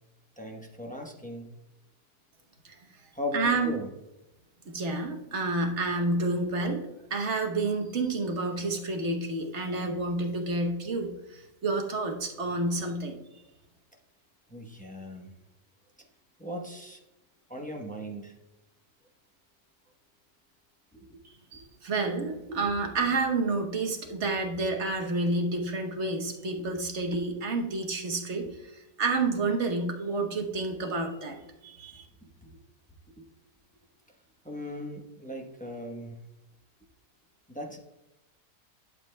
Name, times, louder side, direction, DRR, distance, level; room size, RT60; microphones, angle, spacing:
voice 1, 0.4-1.5 3.1-3.9 14.5-15.3 16.4-17.0 17.5-18.3 21.0-21.2 21.5-21.6 22.5-22.7 32.4-32.6 33.2-33.3 34.4-36.2 37.5-37.8, equal, 10° left, 1 dB, 0.6 m, -38 dB
voice 2, 3.3-3.7 4.7-6.8 7.1-13.2 21.5-28.5 29.0-31.4 31.6-32.1, right 3 dB, 50° right, 3 dB, 1.2 m, -29 dB
11.5 x 7.4 x 2.2 m, 0.96 s
omnidirectional pair, 1.6 m